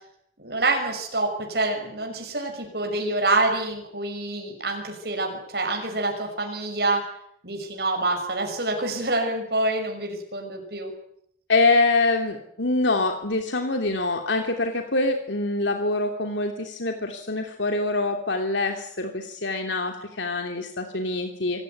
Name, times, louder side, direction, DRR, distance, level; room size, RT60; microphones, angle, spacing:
voice 1, 0.4-7.0 7.4-10.9, right 2 dB, 65° right, 2 dB, 6.1 m, -26 dB
voice 2, 11.5-21.6, left 2 dB, 85° left, 4 dB, 2.9 m, -25 dB
26.5 x 16.5 x 9.4 m, 0.69 s
head